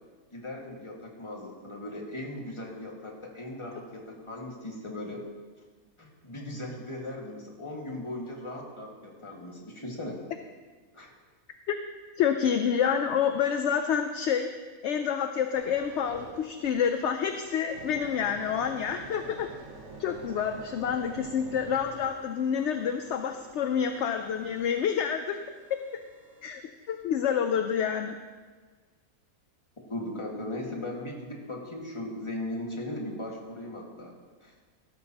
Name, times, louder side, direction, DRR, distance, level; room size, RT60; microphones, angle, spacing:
voice 1, 0.3-5.2 6.0-10.2 10.9-11.1 29.8-34.2 34.4-34.5, left 1 dB, 20° left, -1 dB, 1.8 m, -38 dB
voice 2, 12.2-14.5 14.8-19.5 20.0-25.4 26.4-26.6 26.9-28.2, left 8 dB, 65° left, 7 dB, 0.8 m, -28 dB
sound 1, 15.5-26.5 27.0-27.2, right 3 dB, 55° right, 1.4 m, -48 dB
14.5 x 12.5 x 2.9 m, 1.4 s
omnidirectional pair, 1.5 m